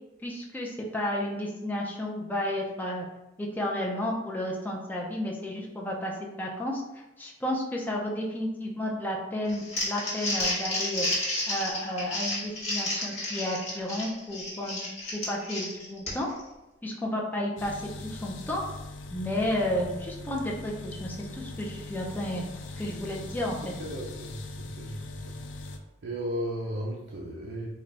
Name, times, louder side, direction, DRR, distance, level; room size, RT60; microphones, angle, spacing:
voice 1, 0.2-3.1 3.4-11.1 11.5-14.8 15.1-16.3 16.8-18.6 19.1-22.5 22.8-23.7, left 1 dB, 10° left, -2 dB, 0.5 m, -32 dB
Crumpling crinkling, 9.5-16.4, left 1 dB, 35° left, 1.1 m, -31 dB
sound 1, 17.6-25.8, left 2 dB, 80° left, 0.4 m, -41 dB
voice 2, 23.5-25.4 25.6-25.8 26.0-27.7, equal, 65° right, -2 dB, 0.5 m, -36 dB
3.8 x 2.3 x 3.3 m, 0.97 s
head